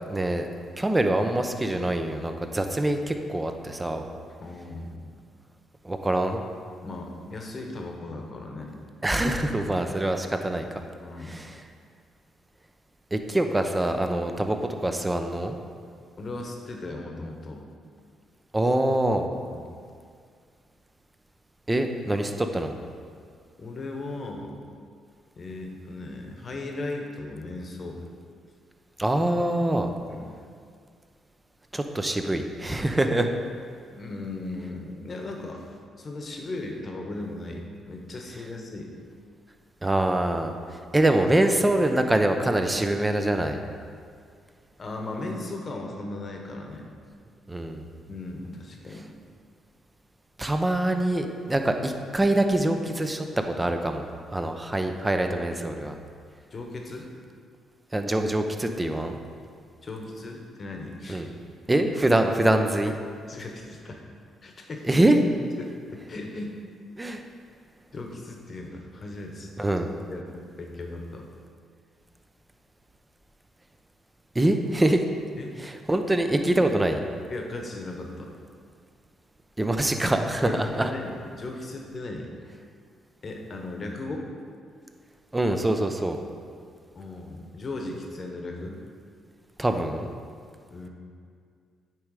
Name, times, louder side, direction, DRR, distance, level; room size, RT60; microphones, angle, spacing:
voice 1, 0.1-0.5 0.8-4.0 5.8-6.4 9.0-10.8 11.2-11.6 13.1-15.5 18.5-19.3 21.7-22.7 29.0-29.9 31.7-33.3 39.8-43.6 47.5-47.8 50.4-54.1 54.3-56.0 57.9-59.2 61.1-61.3 61.7-62.9 64.8-65.2 67.0-67.2 69.6-69.9 74.3-75.0 75.6-77.1 79.6-80.9 85.3-86.2 89.6-90.1, right 1 dB, 15° right, 6 dB, 0.5 m, -24 dB
voice 2, 4.4-5.2 6.8-8.7 11.0-11.4 16.2-17.6 19.5-19.7 23.6-24.6 25.4-28.1 30.1-30.3 33.9-38.9 44.8-46.9 48.1-49.1 55.2-55.3 56.5-57.1 59.8-61.2 63.3-64.0 64.4-65.0 65.6-66.6 67.9-69.7 70.1-71.3 75.4-75.5 77.3-78.3 80.4-82.3 83.2-84.3 86.9-88.8 90.7-90.9, left 2 dB, 40° left, 2 dB, 1.0 m, -37 dB
8.7 x 3.2 x 4.8 m, 2.2 s
cardioid pair, 90°, 0 cm